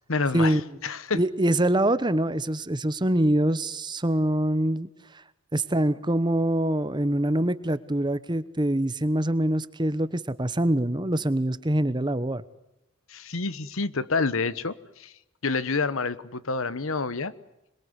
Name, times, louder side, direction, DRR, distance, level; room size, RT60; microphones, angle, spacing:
voice 1, 0.1-1.2 13.1-15.1 15.4-17.3, left 4 dB, 70° left, 16 dB, 1.1 m, -28 dB
voice 2, 1.1-5.2 5.5-12.4, right 1 dB, 20° right, 15 dB, 1.0 m, -24 dB
26.5 x 22.0 x 9.7 m, 0.88 s
head